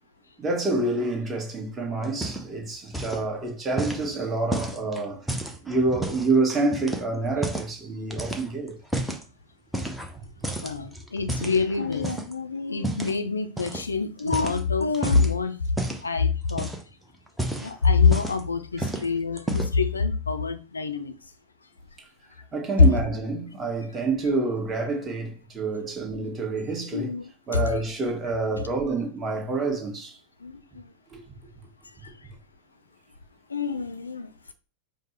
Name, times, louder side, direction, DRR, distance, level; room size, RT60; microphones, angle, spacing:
voice 1, 0.4-5.4 5.6-8.8 18.8-18.9 22.5-27.1 27.5-30.2, right 3 dB, 20° right, 1.4 m, -27 dB
sound 1, 2.0-2.6 2.9-3.3 3.8-6.3 6.7-7.8 8.1-9.2 9.7-10.2 10.4-12.3 12.8-13.2 13.6-13.8 14.2-15.3 15.8-16.1 16.4-16.9 17.3-18.5 18.8-19.1 19.4-19.8, right 1 dB, 5° right, 0.7 m, -32 dB
voice 2, 10.6-15.6 16.0-16.7 17.6-21.2 26.9-27.6 30.4-30.9 32.0-32.1 33.5-34.5, left 5 dB, 75° left, 0.5 m, -26 dB
5.0 x 2.1 x 4.3 m
figure-of-eight pair, 90°, 0 cm